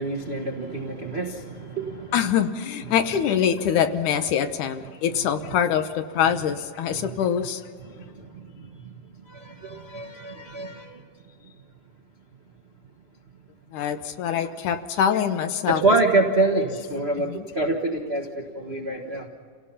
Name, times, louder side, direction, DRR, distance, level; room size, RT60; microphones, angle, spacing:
voice 1, 0.0-2.2 6.9-7.1 7.8-8.9 9.2-11.0 11.4-11.5 15.7-19.3, right 2 dB, 75° right, 0 dB, 0.5 m, -26 dB
voice 2, 2.1-7.6 13.7-15.8 17.3-17.4, left 8 dB, 70° left, 9 dB, 2.3 m, -24 dB
29.0 x 18.0 x 5.6 m, 2.1 s
omnidirectional pair, 3.9 m